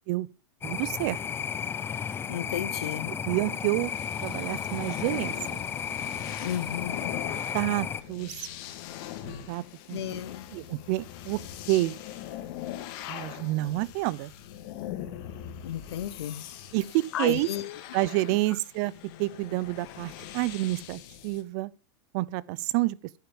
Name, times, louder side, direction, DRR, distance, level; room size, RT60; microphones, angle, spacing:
sound 1, 0.6-8.0, left 7 dB, 15° left, 0.6 m, -34 dB
voice 1, 0.6-1.2 3.2-3.9 4.2-5.6 7.5-8.5 9.2-9.6 9.9-10.2 10.5-11.4 11.7-12.0 13.1-14.3 16.7-17.5 17.9-18.9 19.2-21.7 22.1-23.0, right 19 dB, 50° right, 0.7 m, -28 dB
voice 2, 2.3-3.2 6.4-7.0 9.9-10.5 15.6-16.4 17.1-17.8 18.3-18.4, left 11 dB, 85° left, 1.3 m, -33 dB
sound 2, 3.3-21.4, left 11 dB, 50° left, 2.1 m, -42 dB
10.5 x 9.5 x 7.1 m
supercardioid pair, 145°, 13 cm